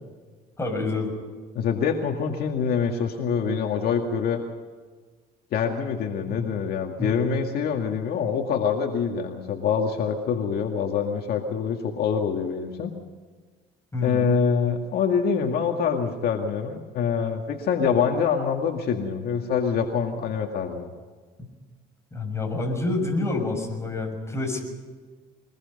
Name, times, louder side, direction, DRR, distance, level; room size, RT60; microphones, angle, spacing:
voice 1, 0.6-1.1 6.3-6.5 7.0-7.2 13.9-14.3 22.1-24.7, left 2 dB, 15° left, 3 dB, 6.3 m, -28 dB
voice 2, 1.6-4.4 5.5-12.9 14.0-20.9, left 6 dB, 65° left, 3 dB, 2.1 m, -25 dB
23.0 x 21.0 x 5.5 m, 1.5 s
cardioid pair, 110°, 17 cm